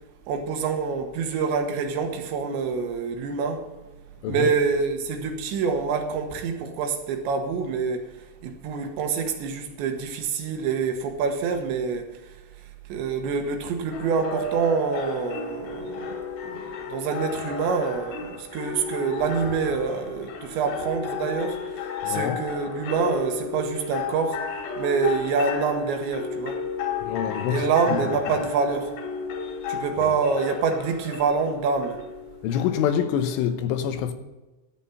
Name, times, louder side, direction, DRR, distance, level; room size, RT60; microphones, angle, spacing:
voice 1, 0.3-3.6 4.3-8.1 8.4-12.0 12.9-21.6 22.1-24.4 24.8-26.6 27.5-28.9 29.7-32.0, right 5 dB, 75° right, 3.3 m, -26 dB
voice 2, 4.2-4.6 22.0-22.4 27.0-28.4 30.1-30.2 32.4-34.1, left 9 dB, 85° left, 3.5 m, -26 dB
sound 1, 13.9-33.5, left 5 dB, 65° left, 3.9 m, -33 dB
13.0 x 9.1 x 5.6 m
omnidirectional pair, 5.5 m